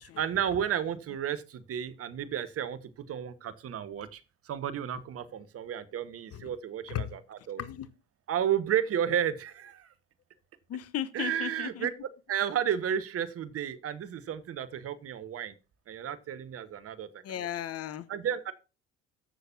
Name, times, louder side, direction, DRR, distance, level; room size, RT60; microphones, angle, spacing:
voice 1, 0.2-4.2 4.4-7.6 8.3-9.9 11.1-11.9 12.3-15.5 15.9-17.5 18.1-18.5, right 9 dB, 50° right, 1.3 m, -32 dB
voice 2, 10.7-11.9 17.2-18.1, left 10 dB, 50° left, 1.0 m, -35 dB
14.5 x 6.5 x 2.7 m
hypercardioid pair, 65°, 30 cm